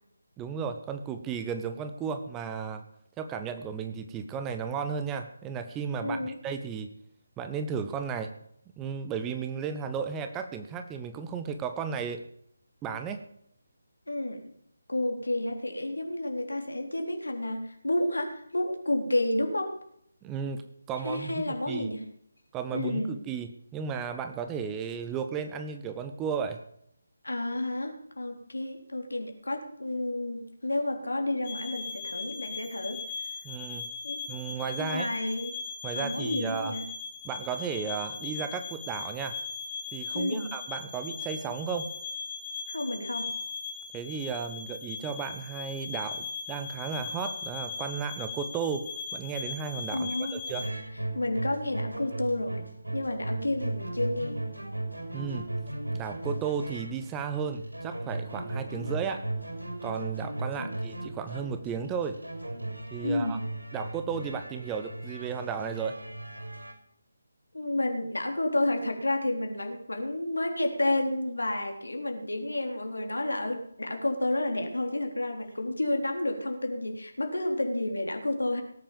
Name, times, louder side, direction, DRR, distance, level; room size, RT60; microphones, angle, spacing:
voice 1, 0.4-2.8 3.2-6.9 7.4-8.3 8.8-12.2 12.8-13.2 20.2-20.6 20.9-21.9 22.5-26.6 33.4-33.9 34.3-35.1 35.8-36.8 37.2-39.4 39.9-41.9 43.9-48.9 49.1-50.7 55.1-55.5 55.9-59.2 59.8-62.2 62.9-63.4 63.7-66.0, right 6 dB, 10° right, 8 dB, 0.8 m, -34 dB
voice 2, 6.0-6.4 14.1-14.4 14.9-19.7 21.0-22.0 22.7-23.2 27.2-33.0 34.0-34.2 34.8-35.5 35.9-36.8 40.1-40.5 42.7-43.3 49.9-50.4 51.1-52.6 52.9-54.4 60.6-60.7 63.0-63.3 67.5-78.6, left 1 dB, 65° left, 3 dB, 3.8 m, -30 dB
sound 1, 31.5-50.7, left 5 dB, 30° left, 1.9 m, -38 dB
sound 2, 50.5-66.7, right 1 dB, 75° right, 5.8 m, -37 dB
18.0 x 8.9 x 7.1 m, 0.72 s
figure-of-eight pair, 155°, 0 cm